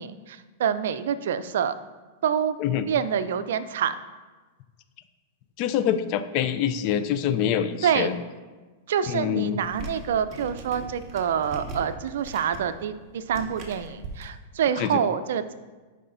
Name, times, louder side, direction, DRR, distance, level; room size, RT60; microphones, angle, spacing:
voice 1, 0.0-1.8 2.2-2.6 2.9-4.0 7.8-8.1 8.9-15.5, right 8 dB, 75° right, 13 dB, 0.4 m, -26 dB
voice 2, 5.6-8.1 9.1-9.6 14.8-15.0, left 9 dB, 45° left, 11 dB, 0.4 m, -25 dB
sound 1, 9.6-14.3, right 2 dB, 30° right, 1.4 m, -40 dB
10.5 x 4.9 x 2.6 m, 1.3 s
hypercardioid pair, 125°, 0 cm